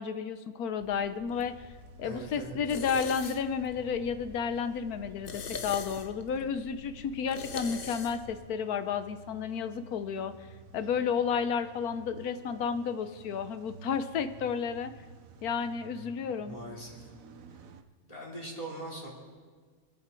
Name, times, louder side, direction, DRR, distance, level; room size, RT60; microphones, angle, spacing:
voice 1, 0.0-1.6 2.0-10.3 10.7-14.9 15.4-16.6, left 6 dB, 85° left, 11 dB, 1.3 m, -32 dB
sound 1, 0.8-8.4, left 6 dB, 45° left, 0.9 m, -44 dB
Car / Engine starting / Idling, 1.3-17.8, right 2 dB, 70° right, 1.3 m, -52 dB
voice 2, 2.0-2.6 16.4-17.1 18.1-19.1, right 1 dB, 25° left, -3 dB, 3.4 m, -41 dB
25.5 x 8.6 x 4.5 m, 1.5 s
omnidirectional pair, 1.5 m